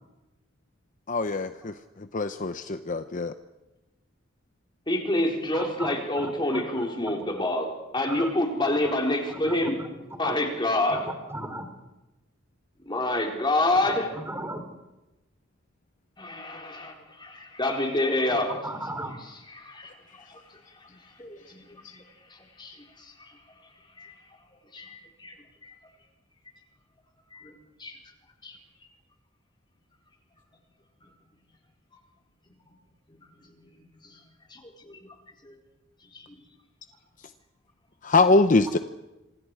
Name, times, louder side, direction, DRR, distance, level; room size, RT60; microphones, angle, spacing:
voice 1, 1.1-1.7 2.1-3.3 38.0-38.8, left 3 dB, 45° left, 10 dB, 0.8 m, -23 dB
voice 2, 4.9-9.7 10.2-11.1 12.8-14.1 16.2-18.6 19.5-19.9 20.3-20.4 21.2-22.0 22.6-23.3 24.0-24.1 24.7-25.4 25.6-25.7 27.3-27.5 27.8-28.0 28.4-28.6 33.2-33.7 34.0-34.2 34.5-35.0 35.4-35.5 36.1-36.4, left 1 dB, 25° left, 1 dB, 4.2 m, -28 dB
voice 3, 5.5-6.6 7.0-7.2 8.1-8.3 8.6-10.3 10.9-11.6 13.7-14.6 18.3-19.1, right 1 dB, 15° right, 6 dB, 3.2 m, -38 dB
26.5 x 25.5 x 4.8 m, 1.0 s
head